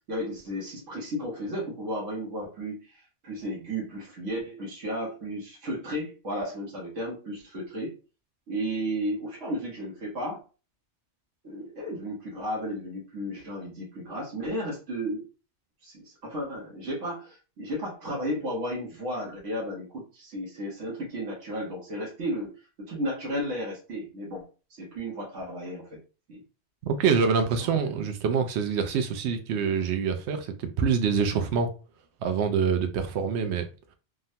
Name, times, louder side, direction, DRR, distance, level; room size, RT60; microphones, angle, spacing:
voice 1, 0.1-7.9 8.5-10.4 11.4-15.3 15.8-22.6 22.9-26.0 26.3-26.4 27.6-27.7, equal, 90° right, 1.4 m, -34 dB
voice 2, 26.8-31.7 32.2-33.7, right 6 dB, 70° right, 0.8 m, -25 dB
3.6 x 2.1 x 2.6 m
omnidirectional pair, 1.2 m